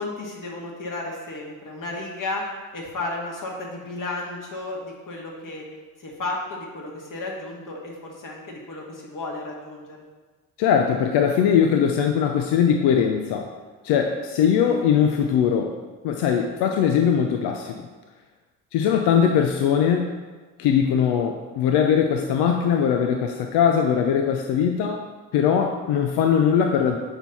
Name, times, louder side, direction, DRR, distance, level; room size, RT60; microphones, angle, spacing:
voice 1, 0.0-5.7 6.0-10.0, left 2 dB, 50° left, -1 dB, 2.0 m, -33 dB
voice 2, 10.6-13.5 13.8-15.7 16.0-17.7 18.7-20.1 20.6-25.0 25.3-27.0, left 8 dB, 80° left, 4 dB, 0.7 m, -20 dB
6.7 x 4.5 x 5.4 m, 1.3 s
supercardioid pair, 65°, 40 cm